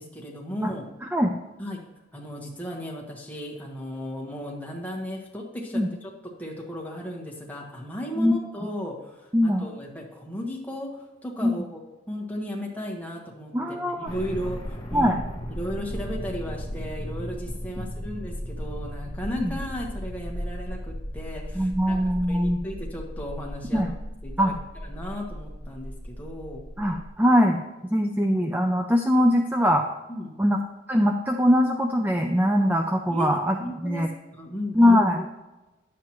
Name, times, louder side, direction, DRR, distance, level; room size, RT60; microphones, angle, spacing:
voice 1, 0.0-0.9 1.6-1.8 2.1-6.1 6.4-11.8 12.1-15.2 15.5-22.0 22.3-23.8 24.2-24.5 24.8-26.6 30.1-30.3 33.1-33.3 33.6-34.1 34.3-35.0, equal, 10° left, -1 dB, 1.3 m, -35 dB
voice 2, 1.0-1.3 5.7-5.9 8.2-8.4 9.3-9.7 11.4-11.5 13.5-14.1 14.9-15.2 17.8-17.9 19.4-19.5 21.6-22.6 23.7-23.9 24.4-24.5 26.8-27.6 27.9-29.9 30.4-30.6 30.9-34.1 34.7-35.3, equal, 10° right, 4 dB, 0.4 m, -22 dB
sound 1, 14.1-27.1, equal, 25° left, 1.0 m, -36 dB
10.0 x 7.5 x 3.0 m, 1.1 s
head